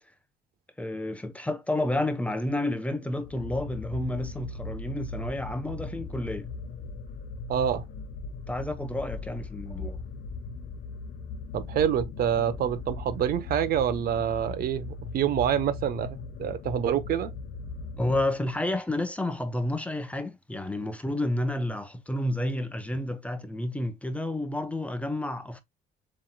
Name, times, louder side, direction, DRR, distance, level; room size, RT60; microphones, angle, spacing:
voice 1, 0.8-6.5 8.5-10.0 17.9-25.6, left 1 dB, 10° left, 0.8 m, -30 dB
sound 1, 3.2-18.6, left 4 dB, 65° left, 0.8 m, -39 dB
voice 2, 7.5-7.9 11.5-17.3, right 9 dB, 60° right, 0.8 m, -27 dB
7.4 x 3.2 x 2.2 m
cardioid pair, 110°, 17 cm